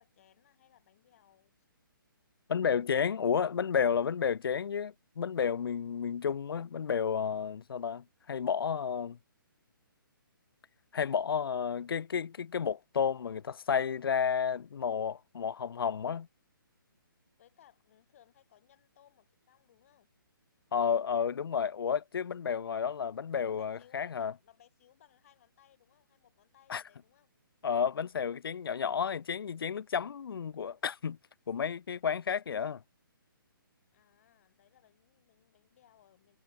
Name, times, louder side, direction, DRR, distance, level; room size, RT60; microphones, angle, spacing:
voice 1, 0.0-1.7 17.4-20.1 22.7-22.8 23.5-27.3 33.9-36.4, left 11 dB, 40° left, 7.6 m, -64 dB
voice 2, 2.5-9.2 10.9-16.3 20.7-24.3 26.7-26.8 27.6-31.2 31.5-32.8, left 7 dB, 85° left, 0.4 m, -31 dB
hypercardioid pair, 165°, 12 cm